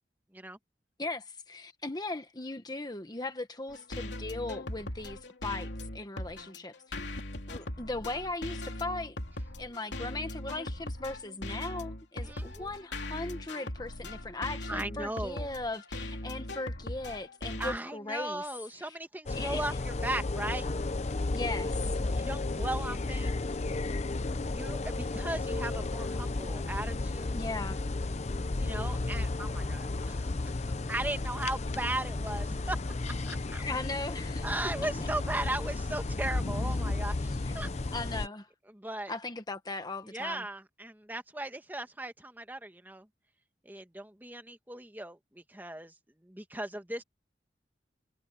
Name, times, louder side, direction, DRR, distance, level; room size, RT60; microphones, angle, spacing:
voice 1, 1.0-9.2 9.6-18.5 18.8-19.0 19.3-19.6 21.3-22.0 27.3-27.8 33.7-34.5 37.4-37.5 37.9-38.5 39.1-40.4, left 2 dB, 25° left, 1.2 m, -38 dB
sound 1, 3.7-17.8, left 1 dB, 90° left, 2.8 m, -39 dB
voice 2, 12.2-12.7 14.7-15.5 17.6-20.7 22.0-23.4 24.5-27.4 28.6-30.6 30.9-32.8 33.3-33.7 34.4-37.7 38.7-39.1 40.1-43.1 43.6-45.9 46.2-47.0, right 1 dB, 10° right, 1.4 m, -37 dB
sound 2, 19.3-38.3, left 2 dB, 40° left, 0.7 m, -33 dB
head